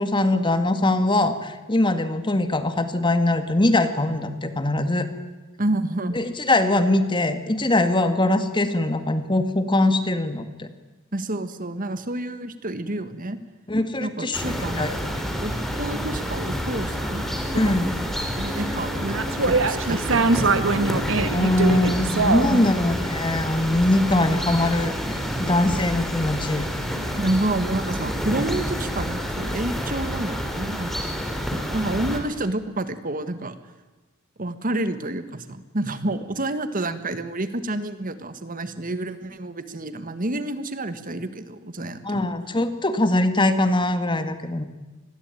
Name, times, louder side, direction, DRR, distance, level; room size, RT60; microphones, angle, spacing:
voice 1, 0.0-5.1 6.1-10.7 13.7-14.4 14.8-14.9 17.5-17.9 21.3-26.7 42.0-44.7, left 2 dB, 25° left, 9 dB, 1.9 m, -22 dB
voice 2, 5.6-6.2 11.1-13.4 14.0-17.2 17.5-17.9 18.3-20.9 22.5-23.0 27.2-31.0 31.5-33.6 34.4-42.3, right 1 dB, 45° right, 11 dB, 1.7 m, -29 dB
sound 1, 14.3-32.2, equal, ahead, 4.0 m, -28 dB
sound 2, 17.4-18.6 19.0-22.6, right 3 dB, 65° right, 1.8 m, -23 dB
27.0 x 21.0 x 9.2 m, 1.1 s
head